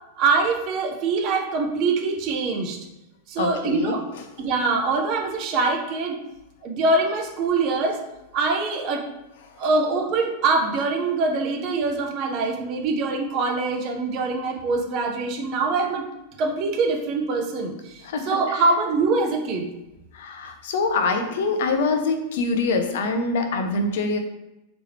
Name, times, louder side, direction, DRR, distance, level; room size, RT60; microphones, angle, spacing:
voice 1, 0.2-2.8 3.3-4.0 4.4-6.2 6.6-8.0 8.3-9.1 9.6-16.0 16.4-19.7, right 3 dB, 40° right, 3 dB, 0.6 m, -24 dB
voice 2, 3.4-4.2 18.0-18.6 20.1-24.2, left 3 dB, 55° left, 6 dB, 0.5 m, -25 dB
3.3 x 3.0 x 3.4 m, 0.93 s
figure-of-eight pair, 90°, 0 cm